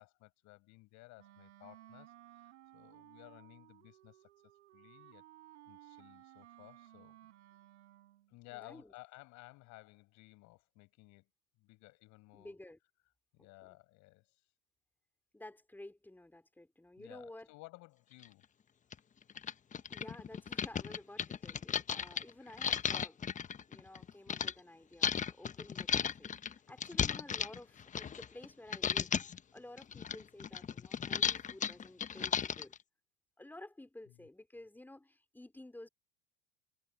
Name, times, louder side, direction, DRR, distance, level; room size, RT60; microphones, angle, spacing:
voice 1, 0.0-4.3 4.7-5.2 5.6-7.3 8.3-11.3 11.6-12.5 13.3-14.3 17.0-18.4 22.4-22.7 34.1-34.3, left 22 dB, 55° left, 6.8 m, -57 dB
Wind instrument woodwind instrument, 1.2-8.3, right 13 dB, 75° right, 7.1 m, -58 dB
voice 2, 8.5-8.9 12.3-12.8 13.4-13.8 15.3-17.5 19.9-23.2 23.7-32.7 33.4-35.9, left 1 dB, 5° left, 4.7 m, -53 dB
sound 1, 18.2-18.3 18.9-19.0 19.3-24.5 25.0-28.5 28.7-29.4 29.8-32.8, left 7 dB, 20° left, 1.1 m, -35 dB
hypercardioid pair, 95°, 35 cm